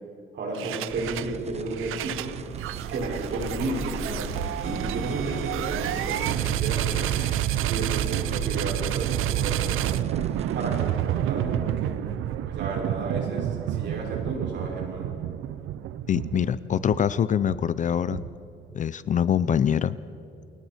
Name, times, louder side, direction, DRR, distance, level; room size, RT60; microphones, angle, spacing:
voice 1, 0.3-2.3 2.9-4.4 4.6-7.1 7.7-10.0 10.5-12.0 12.4-15.2, right 2 dB, 60° right, 0 dB, 5.9 m, -33 dB
sound 1, 0.5-1.3 1.7-18.6, right 12 dB, 85° right, 0.7 m, -29 dB
sound 2, 0.9-10.9, right 5 dB, 30° right, 1.1 m, -41 dB
sound 3, 3.4-9.7, left 3 dB, 90° left, 4.2 m, -41 dB
voice 2, 16.1-18.2 18.7-20.0, left 8 dB, 40° left, 16 dB, 0.5 m, -24 dB
28.5 x 22.0 x 4.4 m, 2.9 s
cardioid pair, 145°, 21 cm